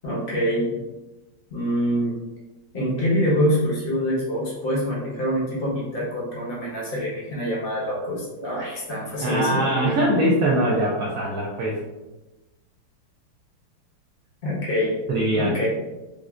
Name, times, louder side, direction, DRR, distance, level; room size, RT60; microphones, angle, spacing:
voice 1, 0.0-0.7 1.5-2.1 2.7-9.9 14.4-15.0 15.4-15.7, equal, 35° left, -6 dB, 1.0 m, -25 dB
voice 2, 9.2-11.8 15.1-15.6, right 1 dB, 85° right, -3 dB, 0.8 m, -22 dB
5.0 x 2.1 x 2.4 m, 1.1 s
omnidirectional pair, 2.2 m